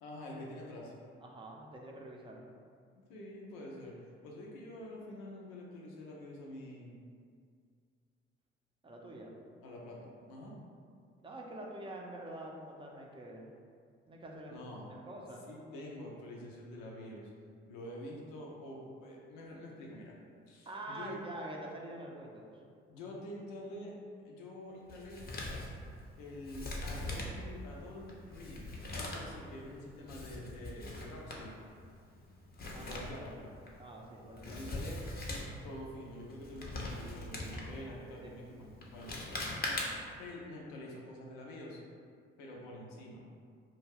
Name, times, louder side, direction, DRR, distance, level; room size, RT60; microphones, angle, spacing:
voice 1, 0.0-0.9 2.9-7.0 9.6-10.6 14.5-14.8 15.5-17.3 17.7-20.2 20.5-21.2 22.9-24.0 24.2-25.2 26.2-28.6 28.9-31.6 32.8-33.5 34.4-35.0 35.6-39.1 40.2-41.8 42.4-43.3, left 1 dB, 80° left, -2 dB, 0.5 m, -47 dB
voice 2, 1.2-2.4 8.8-9.3 11.2-13.5 14.1-14.7 15.1-15.4 20.7-22.5 32.7-33.0 33.8-34.6 35.4-35.5 38.1-38.3, right 1 dB, 15° right, -1 dB, 0.5 m, -46 dB
Male speech man speaking, 24.9-40.2, left 1 dB, 30° left, 0.6 m, -42 dB
2.3 x 2.1 x 3.3 m, 2.2 s
hypercardioid pair, 50°, 30 cm